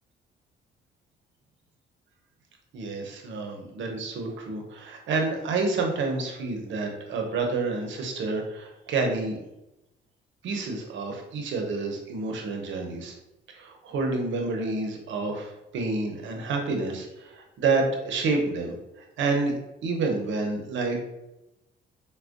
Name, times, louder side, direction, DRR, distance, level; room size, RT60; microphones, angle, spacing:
voice 1, 2.7-9.4 10.4-13.1 13.5-19.5 19.8-21.0, right 3 dB, 75° right, 2 dB, 0.7 m, -29 dB
4.2 x 2.2 x 2.5 m, 0.92 s
cardioid pair, 90°, 20 cm